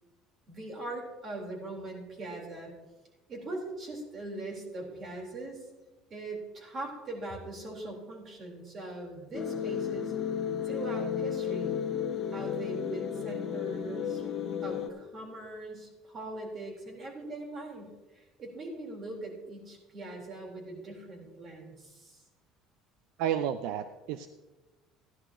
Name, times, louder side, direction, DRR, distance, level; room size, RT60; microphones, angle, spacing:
voice 1, 0.5-2.7 3.3-5.6 6.1-10.1 10.6-11.9 12.3-14.2 14.6-22.2, right 2 dB, 40° right, 0 dB, 4.2 m, -41 dB
sound 1, 9.3-14.9, left 8 dB, 40° left, 1.4 m, -33 dB
voice 2, 23.2-24.3, right 9 dB, 75° right, 11 dB, 0.5 m, -31 dB
15.5 x 11.0 x 3.0 m, 1.2 s
supercardioid pair, 105°, 0 cm